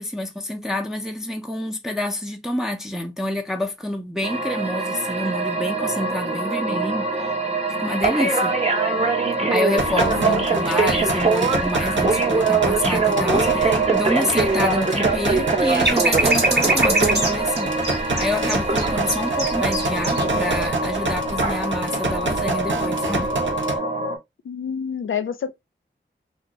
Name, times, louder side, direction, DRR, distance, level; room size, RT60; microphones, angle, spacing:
voice 1, 0.0-7.3 7.8-8.5 9.5-23.3, left 1 dB, ahead, 0.5 m, -28 dB
sound 1, 4.2-24.2, right 3 dB, 30° right, 0.8 m, -23 dB
sound 2, 9.8-23.8, right 2 dB, 75° right, 0.8 m, -27 dB
voice 2, 10.0-10.6 24.4-25.5, left 7 dB, 85° left, 0.4 m, -28 dB
sound 3, 15.7-20.2 20.6-20.7, right 2 dB, 55° right, 1.1 m, -23 dB
2.5 x 2.3 x 2.9 m
cardioid pair, 50°, 20 cm